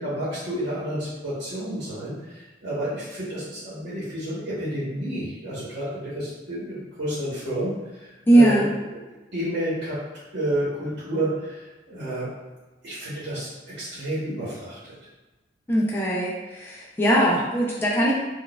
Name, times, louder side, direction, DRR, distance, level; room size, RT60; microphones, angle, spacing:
voice 1, 0.0-8.6 9.3-10.0 10.3-12.3 12.8-13.5 13.8-14.9, right 1 dB, 65° right, -10 dB, 1.0 m, -30 dB
voice 2, 8.3-8.7 15.7-18.1, right 1 dB, 10° left, -5 dB, 0.3 m, -20 dB
4.0 x 2.3 x 2.2 m, 1.2 s
head